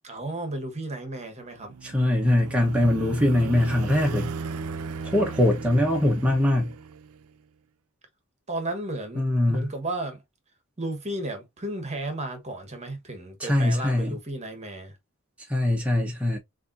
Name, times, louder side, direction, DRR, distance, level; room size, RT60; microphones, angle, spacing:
voice 1, 0.0-1.7 8.5-9.2 9.5-10.2 10.8-15.0, right 2 dB, 30° right, 1.3 m, -33 dB
sound 1, 1.5-7.3, right 5 dB, 90° right, 0.5 m, -36 dB
voice 2, 1.8-4.3 5.1-6.7 9.1-9.7 13.4-14.1 15.5-16.4, left 1 dB, 5° right, 1.0 m, -22 dB
6.7 x 2.7 x 2.6 m
head